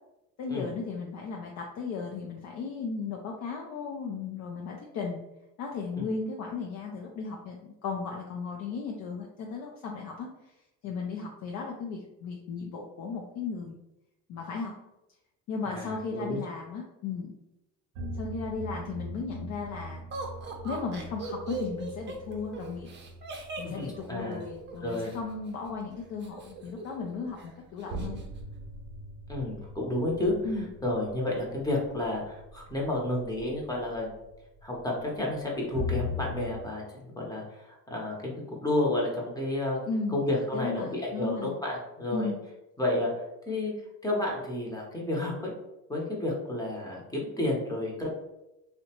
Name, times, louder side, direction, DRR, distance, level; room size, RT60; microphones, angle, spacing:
voice 1, 0.4-5.2 5.6-10.5 10.8-13.8 14.3-14.7 15.5-17.3 18.1-20.1 20.6-22.9 23.6-28.2 30.4-30.7 39.9-40.2 40.5-41.6 42.1-42.4, left 4 dB, 55° left, 0 dB, 0.5 m, -35 dB
voice 2, 15.7-16.4 23.6-24.4 24.8-25.1 29.3-30.3 30.8-34.1 34.6-42.3 42.8-43.7 44.0-45.5 45.9-48.1, left 1 dB, 10° left, -2 dB, 0.8 m, -31 dB
sound 1, 18.0-36.6, left 1 dB, 80° right, 0.5 m, -42 dB
Laughter, 20.1-25.2 26.2-27.1 27.4-27.5 27.8-28.3, right 4 dB, 35° right, 0.6 m, -39 dB
2.6 x 2.1 x 2.8 m, 0.91 s
supercardioid pair, 95°, 34 cm